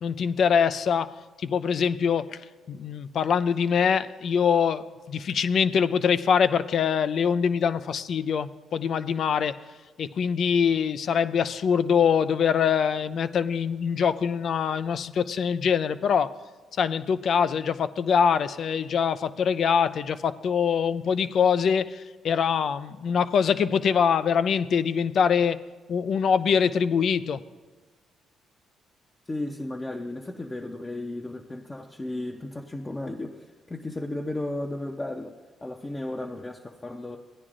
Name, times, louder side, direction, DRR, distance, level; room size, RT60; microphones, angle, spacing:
voice 1, 0.0-2.4 2.7-9.6 10.0-16.3 16.8-25.6 25.9-27.4, left 7 dB, 65° left, 13 dB, 0.4 m, -24 dB
voice 2, 29.3-37.2, left 2 dB, 20° left, 1 dB, 0.7 m, -34 dB
16.5 x 9.7 x 2.5 m, 1.3 s
cardioid pair, 80°, 0 cm